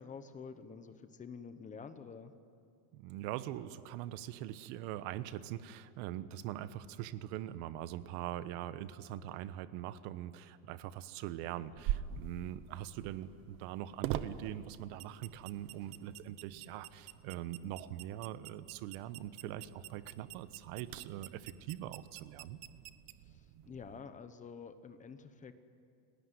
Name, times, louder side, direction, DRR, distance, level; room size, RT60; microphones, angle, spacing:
voice 1, 0.0-2.3 23.2-25.5, left 5 dB, 15° left, 10 dB, 1.0 m, -49 dB
voice 2, 2.9-22.6, right 12 dB, 70° right, 13 dB, 1.3 m, -42 dB
sound 1, 11.8-24.0, right 12 dB, 45° right, 1.0 m, -45 dB
30.0 x 19.5 x 9.7 m, 2.6 s
cardioid pair, 170°, 46 cm